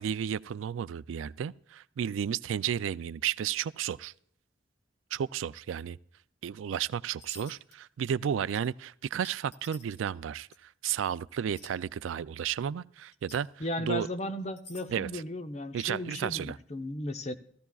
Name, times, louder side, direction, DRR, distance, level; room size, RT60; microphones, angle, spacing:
voice 1, 0.0-4.1 5.1-6.0 6.4-13.5 13.8-14.1 14.9-15.2 15.7-16.6, right 8 dB, 80° right, 0.3 m, -33 dB
sound 1, 7.2-7.7 8.0-8.3 8.5-8.6 9.2-10.1 10.5-10.6 11.6-11.7 13.1-13.4 14.4-14.9, left 3 dB, 60° left, 1.7 m, -50 dB
voice 2, 13.6-17.3, left 1 dB, 35° left, 0.8 m, -35 dB
15.5 x 14.0 x 2.3 m
head